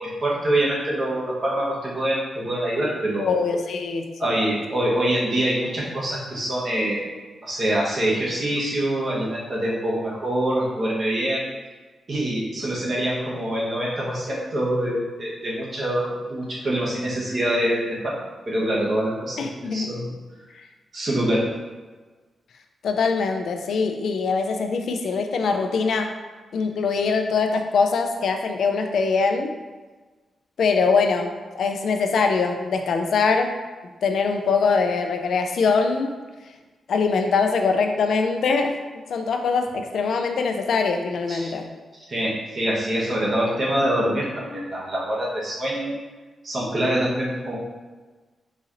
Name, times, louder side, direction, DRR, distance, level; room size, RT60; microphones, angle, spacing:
voice 1, 0.0-3.3 4.2-7.1 7.4-11.4 12.1-20.1 20.9-21.5 41.3-41.5 42.1-46.0 46.4-47.5, right 1 dB, 45° right, -6 dB, 1.0 m, -25 dB
voice 2, 3.1-4.3 19.4-19.9 22.8-26.1 26.5-29.5 30.6-31.3 31.6-33.5 34.0-36.2 36.9-38.7 39.1-41.7, left 4 dB, 75° left, 5 dB, 0.3 m, -22 dB
4.0 x 2.9 x 2.5 m, 1.3 s
cardioid pair, 105°, 0 cm